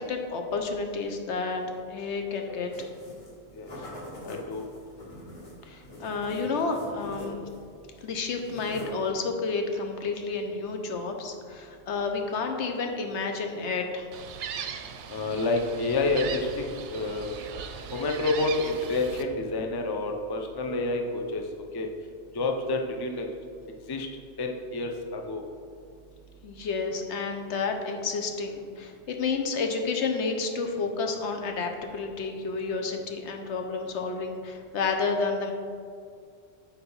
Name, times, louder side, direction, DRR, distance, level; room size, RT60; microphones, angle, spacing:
voice 1, 0.1-2.7 5.6-7.4 8.0-14.1 26.4-35.5, left 4 dB, 75° left, 4 dB, 1.0 m, -30 dB
sound 1, 2.7-3.3 3.6-7.7 7.9-9.1, left 1 dB, 60° left, 1.9 m, -43 dB
voice 2, 4.3-4.7 15.1-16.7 16.9-17.3 17.9-21.4 21.7-21.9 22.3-23.3 23.9-24.1 24.4-25.4, left 2 dB, 30° left, 3 dB, 0.4 m, -28 dB
Gull seagull, 14.1-19.2, right 7 dB, 85° right, 0.9 m, -39 dB
6.6 x 4.2 x 5.5 m, 2.3 s
omnidirectional pair, 1.2 m